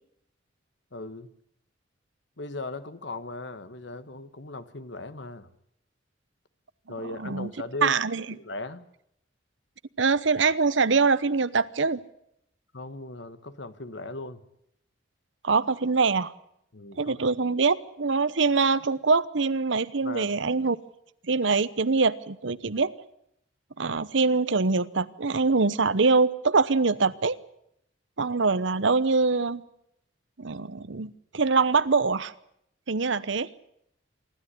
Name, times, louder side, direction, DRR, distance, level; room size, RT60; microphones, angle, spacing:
voice 1, 0.9-1.3 2.4-5.5 6.9-8.0 8.3-8.8 12.7-14.4 16.7-17.2 20.0-20.4 23.9-24.0, left 2 dB, 65° left, 12 dB, 1.4 m, -38 dB
voice 2, 7.2-7.5 7.8-8.2 10.0-12.0 15.4-16.3 17.0-20.8 21.3-22.9 23.8-27.4 28.2-29.6 30.4-32.3 32.9-33.5, right 4 dB, 75° right, 16 dB, 0.9 m, -24 dB
25.5 x 13.0 x 9.9 m, 0.75 s
head